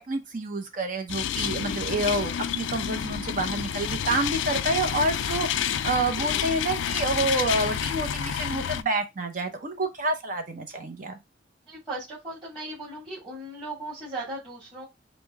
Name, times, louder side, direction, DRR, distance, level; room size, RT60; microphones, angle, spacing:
voice 1, 0.1-11.1, right 2 dB, 45° right, 0.7 m, -28 dB
sound 1, 1.1-8.8, left 9 dB, 85° left, 0.3 m, -29 dB
voice 2, 11.7-14.8, right 2 dB, 25° right, 2.3 m, -37 dB
5.0 x 2.1 x 3.4 m
head